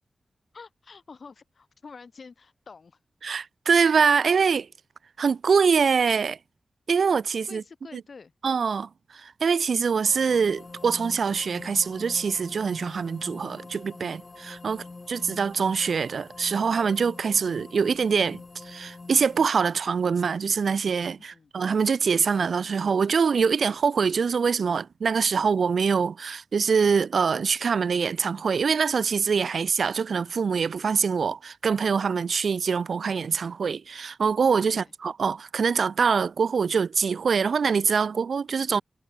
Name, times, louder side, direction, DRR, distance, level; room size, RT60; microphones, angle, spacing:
voice 1, 0.5-3.0 7.5-8.3 14.7-15.0 21.2-21.5 34.7-34.9, left 5 dB, 65° left, 5.2 m, -48 dB
voice 2, 3.2-4.7 5.2-6.4 6.9-7.6 8.4-38.8, right 6 dB, 80° right, 0.5 m, -24 dB
sound 1, 10.0-19.5, left 3 dB, 40° left, 1.4 m, -45 dB
wide cardioid pair, 90°, 0 cm